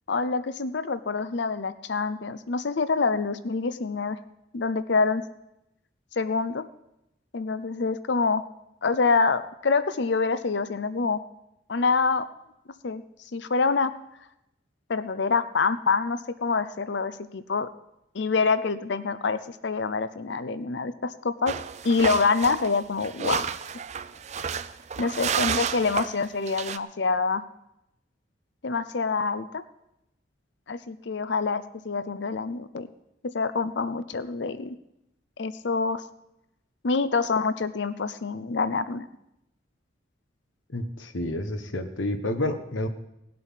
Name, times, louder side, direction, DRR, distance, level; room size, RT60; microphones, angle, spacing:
voice 1, 0.1-4.2 4.5-5.2 6.2-6.7 7.3-8.4 8.8-11.2 11.7-12.3 12.8-13.0 13.3-13.9 14.9-17.7 18.1-21.5 21.8-23.4 25.0-27.4 28.6-29.6 30.7-32.9 33.2-34.8 35.4-36.0 36.8-39.1, left 4 dB, 65° left, 14 dB, 0.6 m, -26 dB
sound 1, 21.5-26.8, right 7 dB, 35° right, 0.4 m, -31 dB
voice 2, 40.7-42.9, left 1 dB, 80° left, 8 dB, 1.2 m, -29 dB
18.5 x 7.7 x 5.7 m, 0.86 s
head